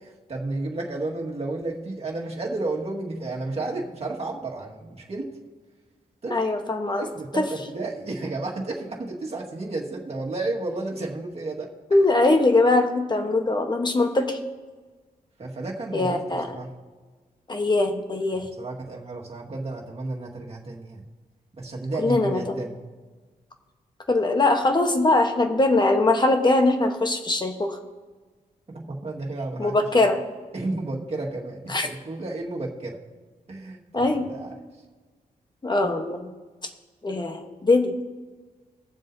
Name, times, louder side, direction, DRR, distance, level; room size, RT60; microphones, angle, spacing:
voice 1, 0.0-5.3 6.2-6.5 7.0-12.0 15.4-16.7 18.6-21.0 21.5-22.7 28.7-30.0 30.5-33.0 33.5-34.5, right 2 dB, 45° right, -2 dB, 1.7 m, -32 dB
voice 2, 6.3-7.1 7.4-7.5 11.9-14.4 15.9-16.5 17.5-18.5 22.0-22.6 24.1-27.8 29.6-30.2 31.7-31.9 33.9-34.3 35.6-36.3 37.0-37.9, left 2 dB, 30° left, 5 dB, 1.1 m, -21 dB
21.5 x 7.5 x 2.7 m, 1.4 s
wide cardioid pair, 110°, 15 cm